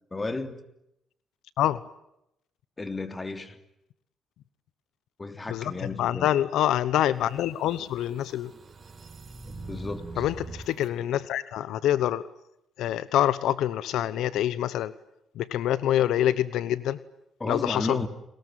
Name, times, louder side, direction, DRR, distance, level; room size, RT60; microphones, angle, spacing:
voice 1, 0.1-0.6 2.8-3.6 5.2-6.3 9.7-10.3 17.4-18.1, left 3 dB, 25° left, 9 dB, 3.1 m, -33 dB
voice 2, 6.0-8.5 10.2-12.2 12.8-14.9 15.4-17.0 17.4-18.0, left 12 dB, 85° left, 17 dB, 1.0 m, -26 dB
sound 1, 7.2-10.9, right 3 dB, 35° right, 4.7 m, -43 dB
29.5 x 21.0 x 9.2 m, 0.82 s
cardioid pair, 90°, 0 cm